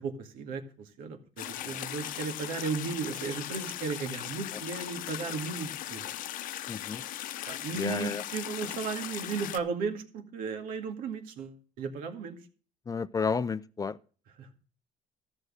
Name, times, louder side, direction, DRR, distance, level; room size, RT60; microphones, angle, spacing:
voice 1, 0.0-6.1 7.5-12.4 14.4-14.5, right 5 dB, 85° right, 2.1 m, -35 dB
sound 1, 1.4-9.6, left 12 dB, 75° left, 0.8 m, -38 dB
voice 2, 6.7-7.0 7.7-8.2 12.9-14.0, left 5 dB, 25° left, 0.5 m, -32 dB
13.5 x 6.5 x 6.3 m
cardioid pair, 105°, 14 cm